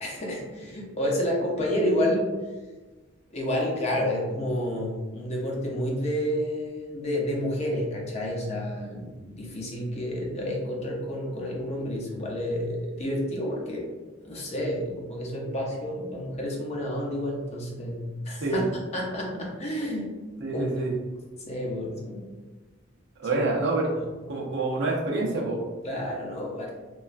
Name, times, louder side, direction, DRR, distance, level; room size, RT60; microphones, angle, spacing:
voice 1, 0.0-2.3 3.3-13.9 14.2-20.2 20.5-20.6 21.5-22.3 23.3-23.4 25.8-26.7, equal, 35° left, -2 dB, 0.5 m, -30 dB
voice 2, 20.4-20.9 23.2-23.9 24.3-25.6, right 2 dB, 60° right, -1 dB, 0.5 m, -27 dB
3.0 x 2.3 x 2.4 m, 1.3 s
head